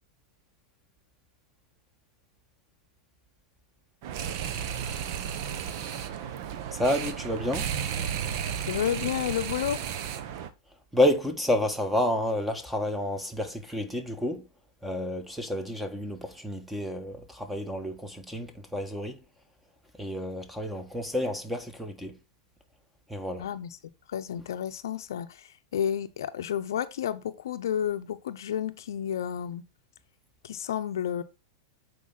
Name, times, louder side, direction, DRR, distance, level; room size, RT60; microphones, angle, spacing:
sound 1, 4.0-10.5, right 8 dB, 55° right, 1.0 m, -33 dB
voice 1, 6.7-7.7 10.9-14.4 14.8-19.2 20.0-22.2 23.1-23.4, left 1 dB, 5° right, 1.4 m, -29 dB
voice 2, 8.7-9.8 23.4-23.8 24.1-29.6 30.4-31.2, left 9 dB, 75° left, 0.6 m, -31 dB
8.4 x 4.5 x 3.9 m
hypercardioid pair, 110°, 2 cm